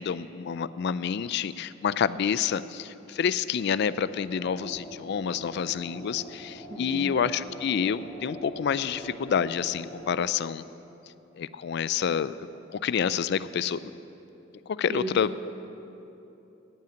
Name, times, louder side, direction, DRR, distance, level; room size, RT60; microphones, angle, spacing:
voice 1, 0.0-10.6 11.4-12.3 12.7-13.8 14.8-15.5, left 7 dB, 60° left, 16 dB, 0.4 m, -28 dB
sound 1, 3.9-10.2, equal, 20° left, 1.8 m, -44 dB
voice 2, 6.7-7.1 14.9-15.1, equal, 35° right, 2 dB, 0.9 m, -35 dB
14.0 x 5.7 x 9.1 m, 2.9 s
head